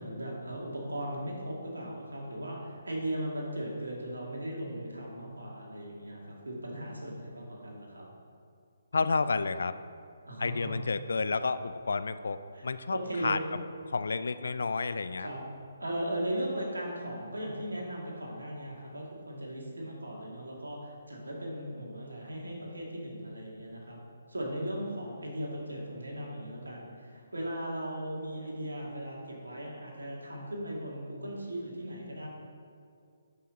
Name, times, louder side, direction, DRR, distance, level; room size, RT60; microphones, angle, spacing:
voice 1, 0.0-8.1 10.3-10.7 12.5-12.7 12.9-13.6 15.2-15.4 15.8-24.0 24.3-32.3, right 1 dB, 85° right, -2 dB, 2.1 m, -37 dB
voice 2, 8.9-9.8 10.4-13.6 13.9-15.3, left 4 dB, 70° left, 13 dB, 0.4 m, -31 dB
11.0 x 5.6 x 4.0 m, 2.3 s
figure-of-eight pair, 140°, 0 cm